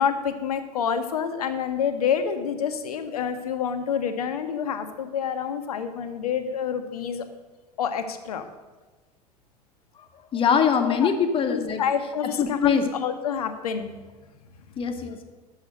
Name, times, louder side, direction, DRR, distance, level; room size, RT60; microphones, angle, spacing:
voice 1, 0.0-7.2 7.8-8.4 10.8-11.1 11.5-13.9, left 7 dB, 65° left, 8 dB, 0.8 m, -28 dB
voice 2, 10.3-11.8 12.2-12.8 14.8-15.2, left 6 dB, 25° left, 8 dB, 0.9 m, -23 dB
6.5 x 6.4 x 6.4 m, 1.2 s
figure-of-eight pair, 80°, 20 cm